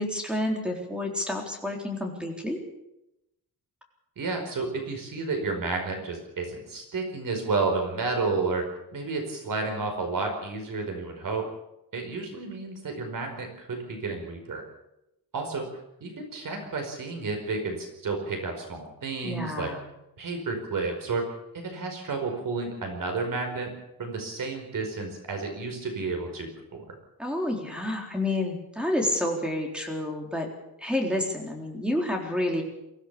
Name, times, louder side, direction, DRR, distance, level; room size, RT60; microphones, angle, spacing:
voice 1, 0.0-2.6 19.2-19.8 27.2-30.5 30.8-32.6, left 1 dB, 5° right, 1 dB, 3.9 m, -29 dB
voice 2, 4.2-11.5 11.9-14.6 15.3-15.7 16.0-19.7 20.2-23.7 24.0-27.0, right 3 dB, 60° right, 4 dB, 4.9 m, -31 dB
23.5 x 16.5 x 7.0 m, 0.88 s
wide cardioid pair, 170°, 37 cm